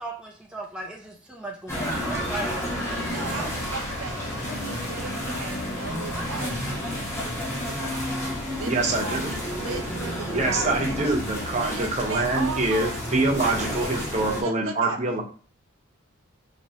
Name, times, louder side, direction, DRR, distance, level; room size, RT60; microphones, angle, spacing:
voice 1, 0.0-3.5 8.5-8.6, right 2 dB, 5° right, -1 dB, 0.4 m, -38 dB
sound 1, 1.7-14.4, equal, 10° left, 1.0 m, -31 dB
Car / Accelerating revving vroom, 2.7-7.6, left 2 dB, 55° left, 0.6 m, -44 dB
voice 2, 3.0-8.2 8.5-11.2 11.5-13.0 13.3-15.0, right 4 dB, 75° right, 5 dB, 0.4 m, -37 dB
voice 3, 8.7-9.3 10.3-15.2, right 2 dB, 35° right, 1 dB, 0.8 m, -25 dB
4.4 x 2.9 x 2.7 m, 0.40 s
head